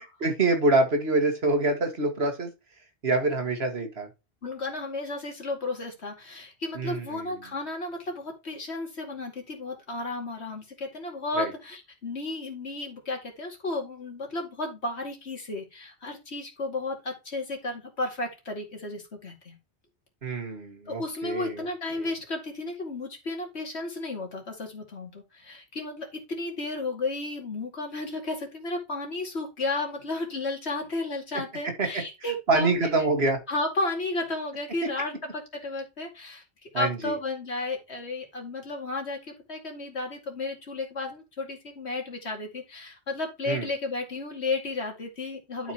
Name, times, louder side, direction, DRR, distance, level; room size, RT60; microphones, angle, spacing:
voice 1, 0.2-2.5 3.0-4.1 6.7-7.4 11.3-11.5 20.2-21.7 22.0-22.1 31.6-32.0 32.5-33.4 36.7-37.2 43.5-43.7, right 2 dB, 70° right, 4 dB, 2.0 m, -26 dB
voice 2, 4.4-19.6 20.9-33.1 33.5-45.7, left 2 dB, 80° left, 1 dB, 2.7 m, -33 dB
12.0 x 5.0 x 3.0 m, 0.25 s
omnidirectional pair, 1.1 m